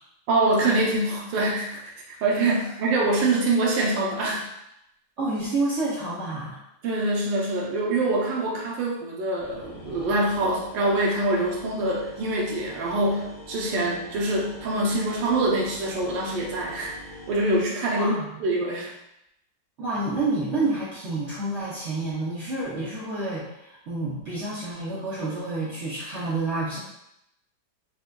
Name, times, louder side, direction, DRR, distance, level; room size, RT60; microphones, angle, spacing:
voice 1, 0.3-1.8 2.1-4.5 6.8-16.9 17.3-18.1 18.4-18.9, right 2 dB, 80° right, -2 dB, 1.4 m, -24 dB
voice 2, 5.2-6.6 17.9-18.3 19.8-26.8, right 2 dB, 65° right, -7 dB, 0.7 m, -29 dB
sound 1, 9.4-17.6, left 1 dB, 75° left, 1.4 m, -45 dB
4.8 x 2.2 x 2.2 m, 0.84 s
omnidirectional pair, 2.0 m